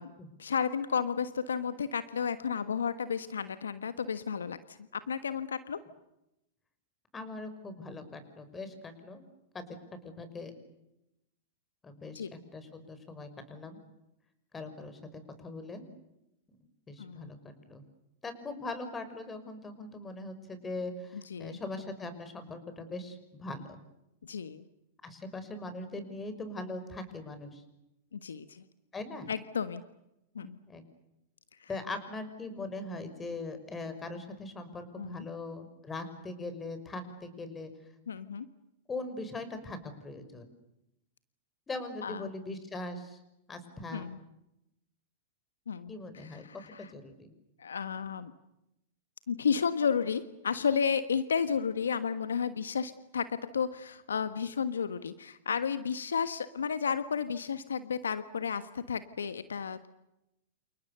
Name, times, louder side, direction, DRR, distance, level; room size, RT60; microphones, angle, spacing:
voice 1, 0.4-5.8 12.1-12.3 17.0-17.3 21.3-21.6 24.2-24.6 28.1-28.6 29.3-29.8 30.3-30.6 31.6-31.7 35.0-35.2 38.1-38.4 42.0-42.3 43.9-44.2 45.7-45.9 46.3-46.9 47.6-48.3 49.3-59.9, left 6 dB, 80° left, 12 dB, 1.4 m, -32 dB
voice 2, 7.1-9.2 9.5-9.7 10.0-10.5 11.8-13.8 14.5-15.8 16.9-17.4 17.7-17.8 18.2-23.8 25.0-27.6 28.9-29.3 30.4-30.8 31.7-37.7 38.9-40.5 41.7-43.2 43.5-44.1 45.9-46.5 46.8-47.3, left 2 dB, 15° left, 10 dB, 5.9 m, -41 dB
29.0 x 29.0 x 6.8 m, 0.87 s
hypercardioid pair, 100°, 0 cm